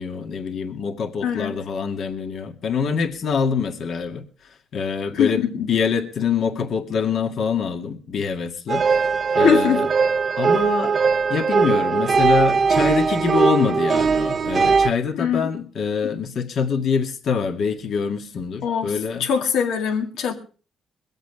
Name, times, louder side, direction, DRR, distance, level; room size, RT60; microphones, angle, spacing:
voice 1, 0.0-4.3 4.7-9.1 9.3-9.9 10.4-11.0 11.3-19.3, left 6 dB, 65° left, 2.1 m, -25 dB
voice 2, 1.2-1.5 5.1-5.5 9.4-9.8 15.1-15.5 16.0-16.1 18.6-18.9 19.2-20.3, left 7 dB, 80° left, 2.2 m, -22 dB
sound 1, 8.7-14.9, right 5 dB, 45° right, 0.6 m, -19 dB
23.0 x 8.1 x 4.7 m
cardioid pair, 90°, 0 cm